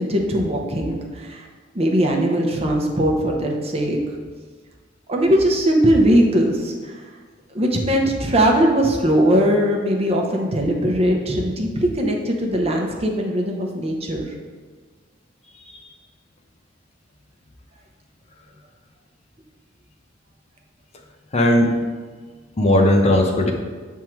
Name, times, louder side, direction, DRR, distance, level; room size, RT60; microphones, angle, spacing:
voice 1, 0.0-1.5 1.7-4.0 5.1-6.9 7.5-14.3, equal, 30° right, 1 dB, 0.8 m, -20 dB
voice 2, 21.3-21.8 22.6-23.5, left 1 dB, 35° left, 2 dB, 0.7 m, -17 dB
7.5 x 3.6 x 4.5 m, 1.5 s
head